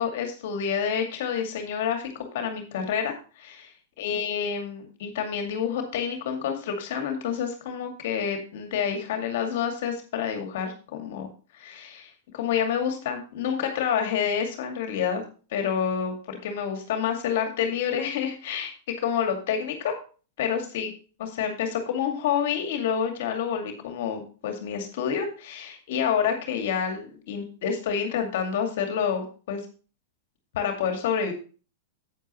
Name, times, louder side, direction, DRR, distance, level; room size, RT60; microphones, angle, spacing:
voice 1, 0.0-3.7 4.0-11.3 11.5-15.2 15.5-18.7 19.0-19.9 20.4-20.9 21.2-29.6 30.5-31.3, left 7 dB, 60° left, 4 dB, 2.2 m, -28 dB
9.3 x 9.2 x 3.1 m, 0.36 s
hypercardioid pair, 105°, 0 cm